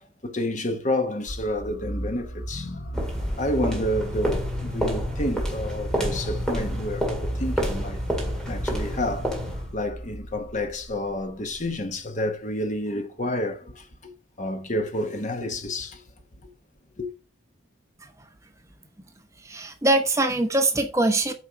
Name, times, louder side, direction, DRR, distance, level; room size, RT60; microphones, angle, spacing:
voice 1, 0.0-3.1 3.4-8.0 8.5-9.3 9.7-14.1 14.4-16.0 17.0-17.1, left 1 dB, 35° left, 1.1 m, -29 dB
sound 1, 1.3-12.1, equal, 50° left, 1.1 m, -35 dB
sound 2, 2.9-9.8, equal, 5° left, 1.8 m, -29 dB
voice 2, 19.4-21.3, right 2 dB, 15° right, 0.8 m, -22 dB
8.5 x 4.6 x 4.6 m
head